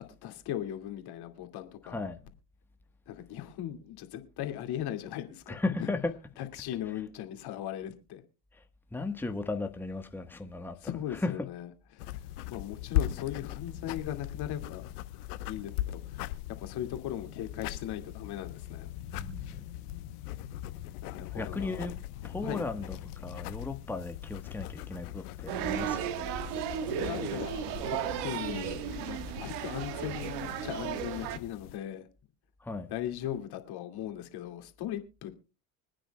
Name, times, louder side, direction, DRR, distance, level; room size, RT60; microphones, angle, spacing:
voice 1, 0.2-2.0 3.1-5.9 6.4-8.2 10.8-12.2 12.5-14.9 15.5-18.9 21.0-21.8 22.4-22.6 26.8-32.1 32.9-35.3, left 11 dB, 55° left, 2.4 m, -38 dB
voice 2, 1.8-2.2 5.5-6.1 6.9-7.0 8.5-8.6 8.9-10.8 11.1-11.3 19.1-19.6 21.2-23.0 23.2-26.0 32.6-32.9, left 3 dB, 5° left, 1.3 m, -36 dB
sound 1, 12.0-31.8, left 13 dB, 80° left, 1.1 m, -39 dB
sound 2, 25.5-31.4, right 9 dB, 65° right, 1.6 m, -34 dB
25.5 x 9.2 x 2.3 m
hypercardioid pair, 85°, 45 cm